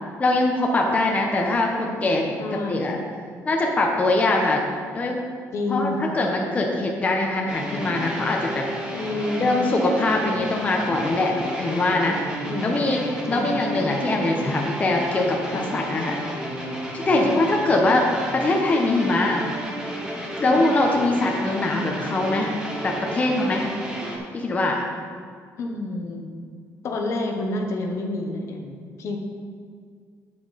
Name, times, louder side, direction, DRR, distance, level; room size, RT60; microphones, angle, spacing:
voice 1, 0.2-3.0 3.4-4.6 4.9-5.2 5.7-5.9 6.1-8.6 9.4-12.2 12.6-15.4 15.7-16.2 16.9-18.0 18.3-19.4 20.4-22.5 22.8-23.6 24.3-24.9, left 2 dB, 25° left, 0 dB, 0.9 m, -22 dB
voice 2, 2.4-3.0 5.5-6.2 8.9-9.6 11.7-11.8 12.4-13.7 15.4-15.7 17.1-17.4 20.5-20.6 22.0-22.1 25.6-26.3 26.8-29.2, left 2 dB, 55° left, 2 dB, 1.1 m, -29 dB
sound 1, 7.5-24.2, right 1 dB, 15° right, 1.4 m, -32 dB
8.6 x 8.0 x 4.2 m, 2.1 s
cardioid pair, 145°, 6 cm